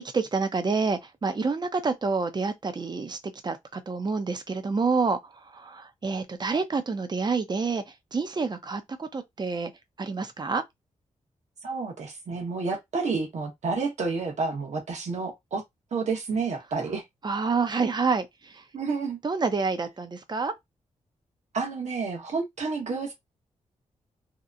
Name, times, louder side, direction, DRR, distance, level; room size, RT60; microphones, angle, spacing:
voice 1, 0.1-3.2 3.4-5.2 5.5-7.8 8.1-9.7 10.0-10.6 17.2-18.3 19.2-20.5, right 4 dB, 35° right, 0.6 m, -27 dB
voice 2, 11.6-15.6 15.9-17.0 18.7-19.2 21.5-23.1, right 4 dB, 65° right, 1.0 m, -30 dB
2.8 x 2.1 x 2.4 m
cardioid pair, 70°, 13 cm